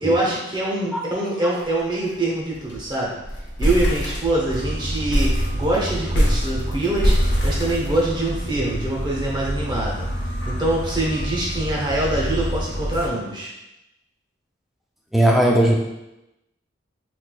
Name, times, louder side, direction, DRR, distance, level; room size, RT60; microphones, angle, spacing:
voice 1, 0.0-3.2 3.6-13.5, right 1 dB, 20° right, -4 dB, 0.7 m, -24 dB
sound 1, 1.6-1.8 2.1-2.2 2.5-2.9 3.2-4.6 5.1-8.4, equal, 55° left, 0.8 m, -22 dB
sound 2, 4.5-13.1, equal, 85° left, 0.8 m, -28 dB
voice 2, 15.1-15.7, right 1 dB, ahead, -1 dB, 0.3 m, -17 dB
3.8 x 3.2 x 2.2 m, 0.93 s
head